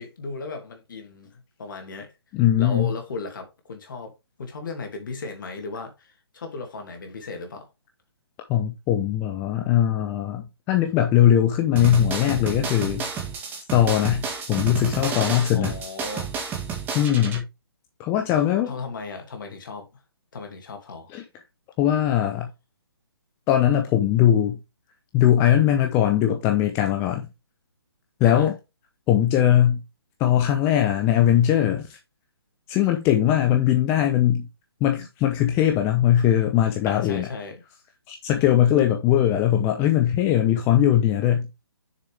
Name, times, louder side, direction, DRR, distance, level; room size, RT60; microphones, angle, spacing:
voice 1, 0.0-2.1 2.6-4.1 4.4-7.7 15.5-16.4 18.6-19.9 20.3-21.1 28.3-28.5 35.0-35.1 36.9-37.6 38.4-38.6, left 3 dB, 50° left, 2.7 m, -36 dB
voice 2, 2.3-2.9 8.5-13.1 13.7-15.7 16.9-17.5 18.0-18.7 21.1-21.2 21.8-22.5 23.5-24.6 25.1-27.3 28.2-28.6 29.1-29.8 30.2-32.0 32.7-34.5 34.8-37.3 38.1-41.5, left 11 dB, 20° left, 0.8 m, -20 dB
sound 1, 11.8-17.4, right 6 dB, 15° right, 1.9 m, -31 dB
6.8 x 6.8 x 3.4 m
figure-of-eight pair, 140°, 13 cm